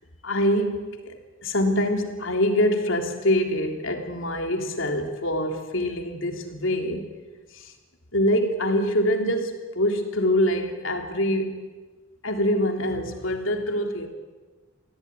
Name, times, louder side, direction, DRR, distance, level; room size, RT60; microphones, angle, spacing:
voice 1, 0.2-7.1 7.5-7.7 8.1-11.6 12.2-14.1, equal, 80° left, 3 dB, 3.4 m, -25 dB
24.5 x 16.5 x 10.0 m, 1.3 s
head